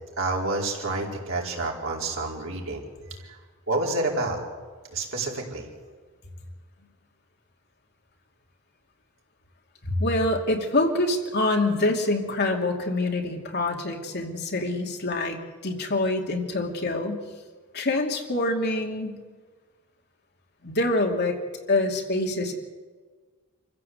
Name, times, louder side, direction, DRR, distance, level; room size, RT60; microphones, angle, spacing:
voice 1, 0.2-3.4 3.7-4.4 4.9-5.7, right 2 dB, 65° right, -1 dB, 4.5 m, -29 dB
voice 2, 9.8-17.2 17.7-19.2 20.6-21.4 21.7-22.5, left 2 dB, 50° left, 2 dB, 2.6 m, -25 dB
26.5 x 15.5 x 8.1 m, 1.5 s
head